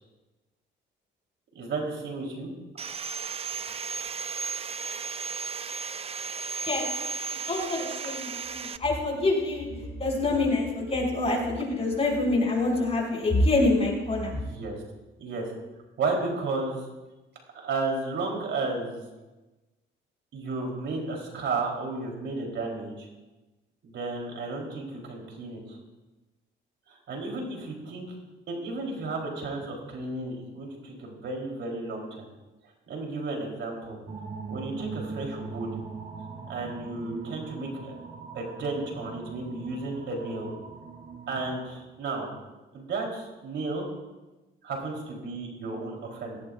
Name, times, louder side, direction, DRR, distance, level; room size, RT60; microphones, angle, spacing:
voice 1, 1.5-2.5 9.7-9.8 14.3-14.8 15.2-15.4 16.0-16.8 17.5-19.0 20.3-23.1 23.8-25.8 26.9-28.1 28.5-32.3 32.9-34.0 34.5-35.7 36.5-37.9 38.3-40.5 41.3-42.3 42.7-43.9 44.6-46.4, right 3 dB, 70° right, 0 dB, 4.0 m, -33 dB
Sawing, 2.8-8.8, right 5 dB, 30° right, 0.5 m, -34 dB
voice 2, 7.5-9.7 10.0-14.3, left 2 dB, 30° left, -2 dB, 5.9 m, -26 dB
sound 1, 34.1-41.6, right 5 dB, 50° right, 3.2 m, -40 dB
18.0 x 16.5 x 2.6 m, 1.1 s
cardioid pair, 90°, 20 cm